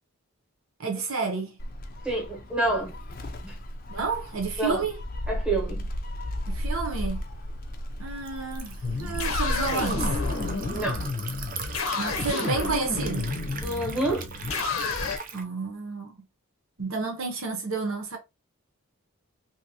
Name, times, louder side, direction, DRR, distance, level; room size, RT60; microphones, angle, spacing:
voice 1, 0.8-1.6 3.9-4.9 6.5-7.2 8.0-10.1 12.0-13.4 15.3-16.2 16.8-18.2, right 4 dB, 70° right, 1.0 m, -31 dB
Gull seagull, 1.6-10.9, equal, 40° left, 0.5 m, -34 dB
voice 2, 2.0-2.9 3.4-3.6 4.6-4.8 5.3-5.9 10.7-11.1 13.6-14.3, right 2 dB, 5° right, 1.0 m, -28 dB
Liquid, 7.2-15.4, right 6 dB, 40° right, 0.5 m, -40 dB
sound 1, 8.8-15.2, left 3 dB, 75° left, 0.7 m, -30 dB
2.9 x 2.8 x 2.8 m
head